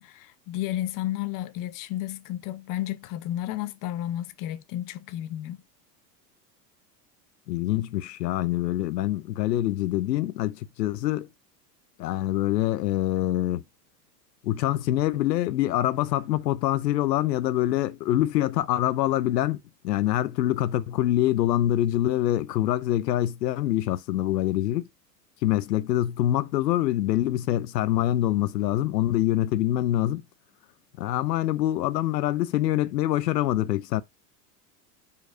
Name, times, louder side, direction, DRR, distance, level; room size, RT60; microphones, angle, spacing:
voice 1, 0.0-5.6, left 13 dB, 40° left, 0.9 m, -32 dB
voice 2, 7.5-11.3 12.0-13.6 14.4-24.9 25.4-30.2 31.0-34.0, left 14 dB, 85° left, 0.7 m, -25 dB
5.4 x 4.5 x 5.0 m
hypercardioid pair, 110°, 49 cm